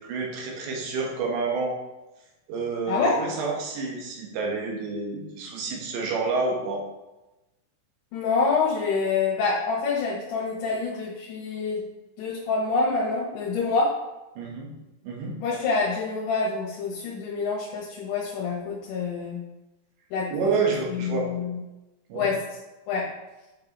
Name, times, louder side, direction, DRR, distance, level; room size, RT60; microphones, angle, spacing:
voice 1, 0.0-1.7 2.5-6.8 14.4-14.7 15.0-15.3 20.3-21.3 22.1-22.3, right 4 dB, 70° right, -1 dB, 3.4 m, -29 dB
voice 2, 2.9-3.2 8.1-11.9 12.2-14.0 15.4-19.4 20.1-20.6 21.0-21.6 22.1-22.4 22.9-23.1, left 4 dB, 70° left, -3 dB, 3.3 m, -26 dB
9.4 x 5.3 x 4.0 m, 1.0 s
omnidirectional pair, 5.9 m